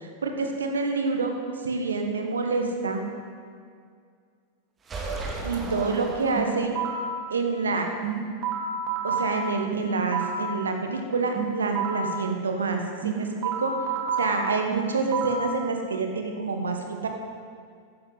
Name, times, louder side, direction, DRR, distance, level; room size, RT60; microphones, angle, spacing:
voice 1, 0.0-3.0 5.4-6.8 7.3-7.9 9.0-13.9 14.2-17.1, right 4 dB, 70° right, 4 dB, 1.4 m, -27 dB
sound 1, 4.8-6.9, right 3 dB, 20° right, 2.1 m, -35 dB
sound 2, 6.4-7.2 8.0-10.6 11.4-12.2 13.0-15.6, right 4 dB, 40° right, 2.0 m, -29 dB
14.0 x 11.0 x 4.1 m, 2.1 s
figure-of-eight pair, 90°, 0 cm